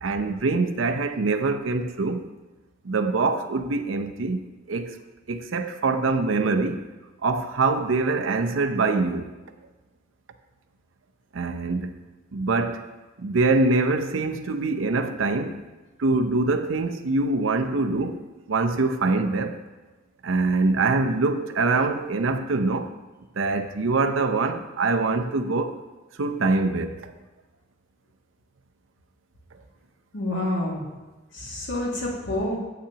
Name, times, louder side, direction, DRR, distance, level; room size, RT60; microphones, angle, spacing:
voice 1, 0.0-2.3 2.8-4.4 4.7-5.0 5.3-6.8 7.2-9.3 11.3-11.9 12.3-12.8 13.2-15.6 16.0-18.2 18.5-19.6 20.2-22.9 23.4-25.7 26.2-27.1, right 3 dB, 90° right, 0.6 m, -24 dB
voice 2, 30.1-30.8 31.3-32.6, left 1 dB, 70° left, 2.1 m, -28 dB
10.0 x 7.9 x 2.9 m
head